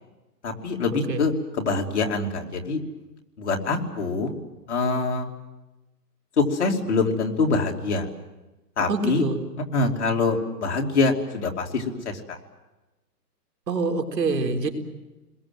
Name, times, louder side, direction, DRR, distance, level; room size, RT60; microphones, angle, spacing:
voice 1, 0.4-2.8 3.4-4.3 4.7-5.3 6.4-8.1 8.8-9.2 9.7-12.4, left 3 dB, 40° left, 1 dB, 2.8 m, -24 dB
voice 2, 8.9-9.4 13.7-14.7, right 3 dB, 75° right, 5 dB, 4.1 m, -25 dB
28.5 x 21.5 x 7.7 m, 1.1 s
hypercardioid pair, 175°, 50 cm